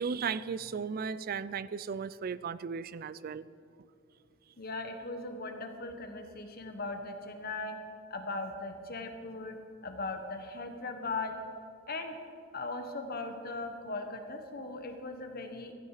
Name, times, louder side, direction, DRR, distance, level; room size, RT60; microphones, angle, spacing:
voice 1, 0.0-3.4, right 6 dB, 45° right, 17 dB, 0.4 m, -35 dB
voice 2, 4.6-7.7 8.1-9.6 9.8-11.4 11.9-12.2 12.5-15.7, left 3 dB, 50° left, 6 dB, 1.3 m, -38 dB
15.0 x 11.5 x 4.9 m, 2.4 s
head